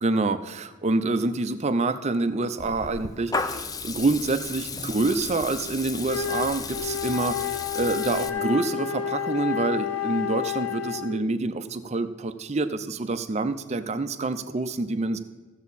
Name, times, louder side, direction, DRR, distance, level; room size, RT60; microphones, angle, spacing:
voice 1, 0.0-15.2, right 3 dB, 30° right, 10 dB, 0.5 m, -27 dB
Water tap faucet / Liquid, 2.6-8.3, left 4 dB, 15° left, 0.4 m, -34 dB
Wind instrument woodwind instrument, 6.0-11.2, left 8 dB, 90° left, 0.8 m, -30 dB
15.5 x 7.1 x 4.2 m, 1.3 s
head